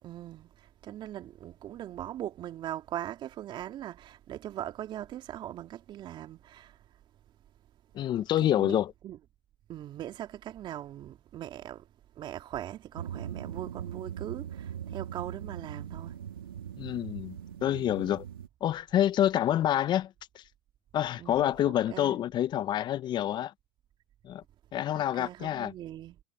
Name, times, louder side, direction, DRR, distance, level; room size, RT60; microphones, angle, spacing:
voice 1, 0.0-6.8 8.4-9.2 9.7-11.9 12.2-16.2 21.2-22.2 24.9-26.2, right 12 dB, 45° right, 2.7 m, -40 dB
voice 2, 7.9-8.9 16.8-17.3 17.6-18.2 18.6-20.1 20.3-20.4 20.9-23.5 24.2-24.4 24.7-25.7, left 11 dB, 40° left, 0.9 m, -27 dB
sound 1, 12.9-18.5, right 9 dB, 90° right, 3.0 m, -40 dB
hypercardioid pair, 90°, 11 cm